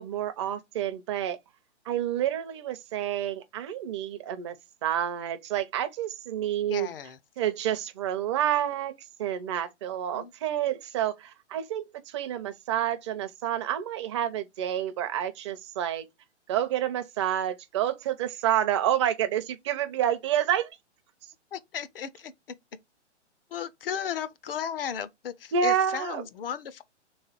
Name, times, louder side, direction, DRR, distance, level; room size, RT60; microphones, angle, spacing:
voice 1, 0.0-1.4 1.9-4.5 4.8-6.9 7.4-8.9 9.2-16.0 16.5-20.7 25.5-26.2, right 10 dB, 25° right, 0.5 m, -29 dB
voice 2, 6.7-7.2 10.1-10.3 21.5-22.3 23.5-26.8, left 8 dB, 50° left, 0.6 m, -35 dB
3.2 x 3.1 x 4.4 m
figure-of-eight pair, 135°, 36 cm